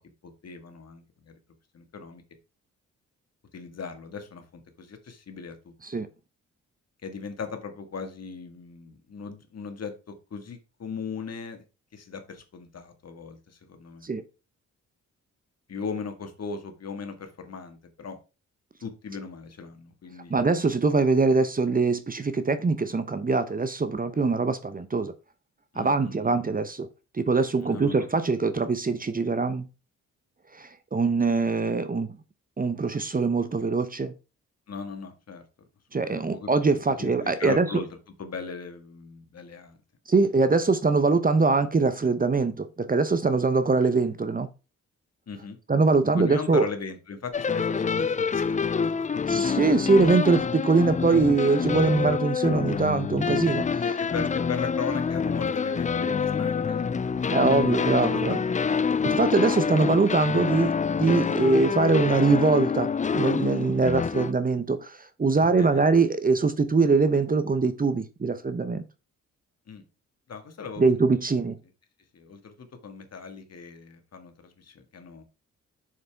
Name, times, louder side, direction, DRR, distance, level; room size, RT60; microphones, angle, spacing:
voice 1, 0.4-1.3 1.7-2.2 3.5-4.5 4.8-6.0 7.0-11.6 11.9-14.1 15.7-18.2 18.8-20.4 25.7-26.4 27.6-28.1 34.7-35.4 35.9-36.5 37.0-37.9 38.2-39.8 45.3-45.6 46.1-48.7 49.1-49.2 53.8-57.3 65.4-65.9 69.7-69.8 70.3-70.8 72.1-75.2, left 5 dB, 55° left, 1.8 m, -38 dB
voice 2, 20.3-25.1 25.8-26.9 27.1-29.7 30.5-32.2 32.6-34.1 35.9-37.8 40.1-44.5 45.7-46.6 49.3-53.8 57.3-58.4 59.0-68.8 70.8-71.6, right 4 dB, 25° right, 0.8 m, -23 dB
sound 1, 47.3-64.3, left 6 dB, 25° left, 0.4 m, -27 dB
6.7 x 6.7 x 3.5 m
cardioid pair, 65°, 31 cm